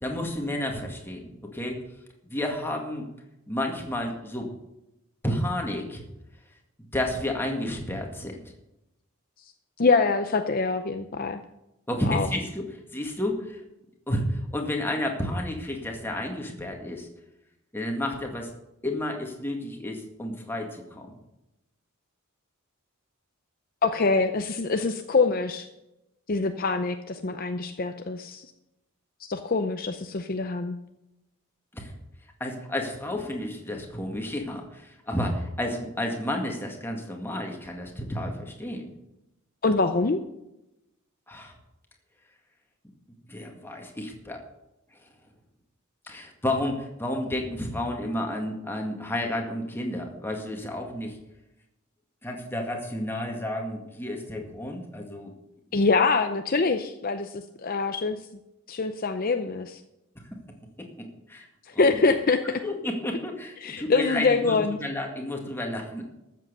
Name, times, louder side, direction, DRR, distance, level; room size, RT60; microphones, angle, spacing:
voice 1, 0.0-1.8 2.2-3.1 3.5-4.5 5.2-6.0 6.8-8.4 11.9-12.7 12.9-13.6 14.1-17.1 17.7-18.5 18.8-21.1 31.7-31.9 32.4-38.9 41.3-41.5 43.3-44.4 46.1-51.2 52.2-55.3 60.3-60.4 60.8-61.5 61.7-62.0 62.6-66.0, left 1 dB, 10° left, 1 dB, 2.0 m, -31 dB
voice 2, 9.8-11.4 12.1-12.3 23.8-25.7 26.3-28.5 29.2-30.7 39.6-40.2 55.7-58.2 58.7-59.8 61.7-62.4 63.6-64.8, left 4 dB, 40° left, 7 dB, 0.6 m, -24 dB
13.5 x 7.6 x 6.7 m, 0.91 s
head